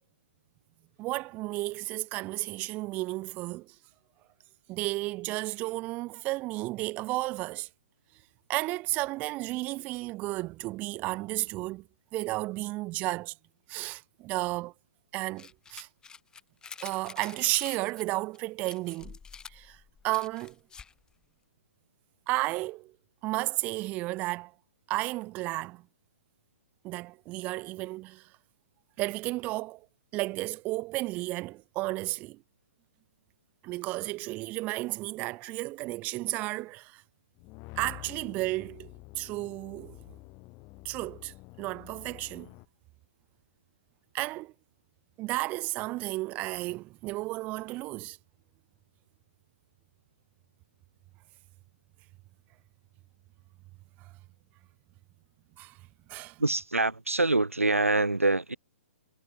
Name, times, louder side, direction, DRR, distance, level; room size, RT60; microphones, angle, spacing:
voice 1, 1.0-3.8 4.7-7.7 8.5-11.9 12.1-13.4 13.7-14.7 15.1-15.9 16.8-19.2 19.5-20.6 22.3-22.9 23.2-24.5 24.9-25.9 26.8-28.3 29.0-29.9 30.1-32.4 33.6-37.0 37.8-40.0 40.8-42.5 44.1-44.5 45.2-48.2 54.0-54.1 55.6-55.8 56.1-56.4, right 20 dB, 20° right, 0.3 m, -33 dB
sound 1, 15.4-18.0 18.3-18.4 18.7-21.0, left 6 dB, 10° left, 1.7 m, -47 dB
sound 2, 37.4-42.7, left 27 dB, 30° left, 1.4 m, -48 dB
voice 2, 56.4-58.6, right 2 dB, 90° right, 0.6 m, -25 dB
figure-of-eight pair, 120°, 7 cm